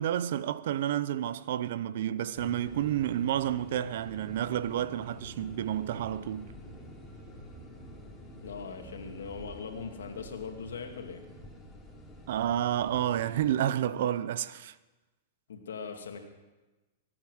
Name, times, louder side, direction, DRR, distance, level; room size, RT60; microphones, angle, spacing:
voice 1, 0.0-6.5 12.3-14.7, right 11 dB, 65° right, 0.6 m, -30 dB
sound 1, 2.3-13.5, equal, 10° left, 3.5 m, -48 dB
voice 2, 8.4-11.2 15.5-16.2, left 5 dB, 85° left, 2.3 m, -40 dB
24.0 x 8.8 x 6.4 m
hypercardioid pair, 115°, 0 cm